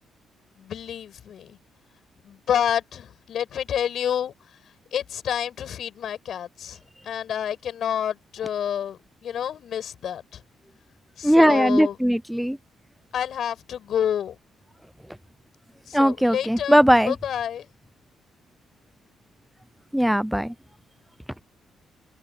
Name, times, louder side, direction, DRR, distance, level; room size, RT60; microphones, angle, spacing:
voice 1, 0.6-1.6 2.2-4.3 4.9-10.4 11.2-12.0 13.1-14.4 15.9-17.7, left 9 dB, 65° left, 7.6 m, -29 dB
voice 2, 11.2-12.6 15.9-17.1 19.9-20.5, equal, ahead, 0.6 m, -19 dB
cardioid pair, 90°, 0 cm